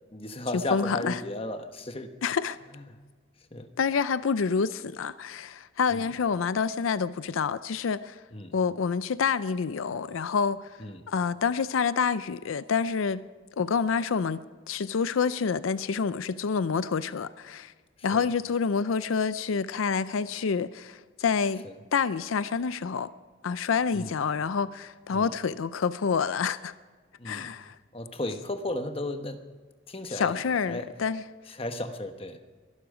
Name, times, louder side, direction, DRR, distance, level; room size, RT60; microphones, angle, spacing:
voice 1, 0.1-2.1 2.7-2.8 3.5-3.7 5.9-6.1 8.3-8.5 10.8-11.1 18.0-18.3 21.6-21.7 23.9-24.1 25.1-25.3 27.2-27.5 27.9-29.4 29.9-30.9 31.5-32.4, left 1 dB, 30° left, 1.1 m, -35 dB
voice 2, 0.7-1.2 2.2-2.6 3.8-8.2 8.5-10.7 11.1-13.2 13.6-17.7 18.0-21.6 21.9-23.1 23.4-26.7 27.2-27.8 30.1-31.2, left 5 dB, 90° left, 0.5 m, -28 dB
22.5 x 12.0 x 5.0 m
head